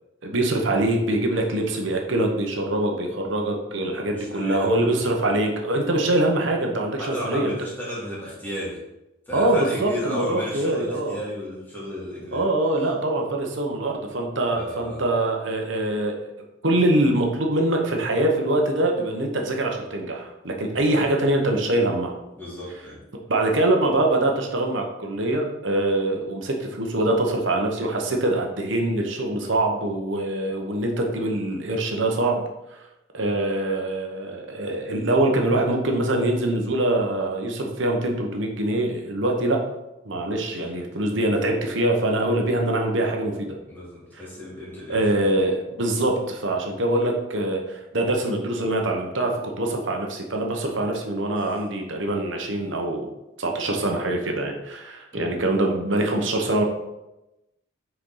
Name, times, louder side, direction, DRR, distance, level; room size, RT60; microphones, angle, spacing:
voice 1, 0.2-7.5 9.3-11.2 12.3-16.2 16.6-22.2 23.3-32.4 32.7-32.8 33.1-39.6 40.0-43.5 44.1-44.2 44.9-53.1 53.4-56.6, right 1 dB, 65° right, 2 dB, 1.1 m, -24 dB
voice 2, 3.7-5.1 7.0-8.8 9.3-12.5 14.5-15.0 20.7-20.9 22.4-23.0 40.5-40.7 43.7-45.0 55.1-55.4, equal, 10° left, -7 dB, 2.2 m, -34 dB
6.5 x 4.6 x 3.9 m, 0.95 s
head